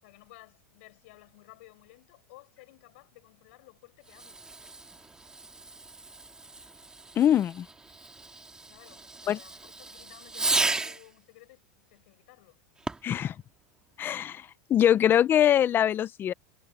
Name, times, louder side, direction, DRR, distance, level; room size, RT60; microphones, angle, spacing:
voice 1, 0.0-4.4 8.7-12.6, left 21 dB, 70° left, 7.0 m, -55 dB
Fireworks, 4.0-11.1 12.8-13.2, right 3 dB, 10° right, 2.3 m, -35 dB
voice 2, 7.2-7.7 9.3-9.4 13.0-13.3 14.0-16.3, left 10 dB, 30° left, 1.0 m, -23 dB
supercardioid pair, 125°, 7 cm